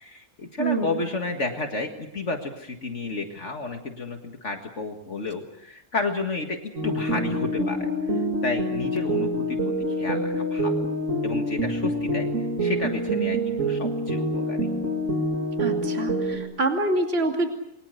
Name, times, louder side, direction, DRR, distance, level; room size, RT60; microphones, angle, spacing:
voice 1, 0.0-10.9 11.2-12.3 12.6-14.7, left 3 dB, 50° left, 4 dB, 2.1 m, -31 dB
voice 2, 0.6-1.0 15.6-17.5, right 2 dB, 45° right, 3 dB, 2.8 m, -26 dB
sound 1, 6.7-16.4, equal, 60° right, 3.3 m, -26 dB
28.5 x 23.0 x 6.7 m, 0.79 s
omnidirectional pair, 1.5 m